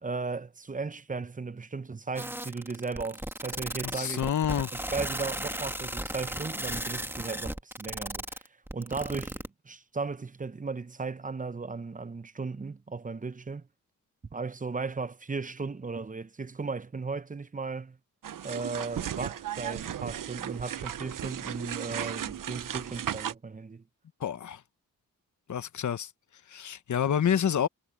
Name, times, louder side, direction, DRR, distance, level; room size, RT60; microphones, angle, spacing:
voice 1, 0.0-4.2 4.7-8.4 8.7-13.7 14.3-18.0 18.4-23.8, right 4 dB, 25° right, 0.8 m, -36 dB
sound 1, 2.2-9.5, right 1 dB, 5° right, 1.9 m, -35 dB
voice 2, 3.8-4.7 24.2-24.6 25.5-26.1 26.5-27.7, left 8 dB, 55° left, 1.0 m, -28 dB
sound 2, 18.2-23.3, right 10 dB, 65° right, 0.8 m, -35 dB
cardioid pair, 60°, 35 cm